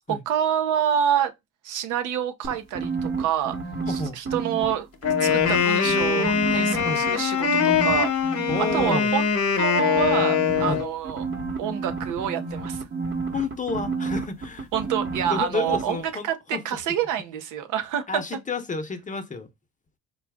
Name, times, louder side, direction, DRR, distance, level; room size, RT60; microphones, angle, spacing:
voice 1, 0.1-1.3 1.6-3.6 3.9-4.9 5.2-8.4 8.7-9.3 9.6-11.2 11.6-12.8 14.7-18.2, right 9 dB, 90° right, 0.7 m, -27 dB
sound 1, 2.4-4.7 5.0-7.1 7.4-8.9 9.8-15.4 15.7-15.8, right 4 dB, 40° right, 1.2 m, -31 dB
voice 2, 3.9-4.2 6.8-7.0 8.5-9.1 10.7-10.8 13.3-14.7 15.3-16.8 18.1-19.5, left 3 dB, 25° left, 0.7 m, -30 dB
Wind instrument woodwind instrument, 5.0-10.9, left 7 dB, 55° left, 0.9 m, -22 dB
3.8 x 2.3 x 3.4 m
cardioid pair, 90°, 30 cm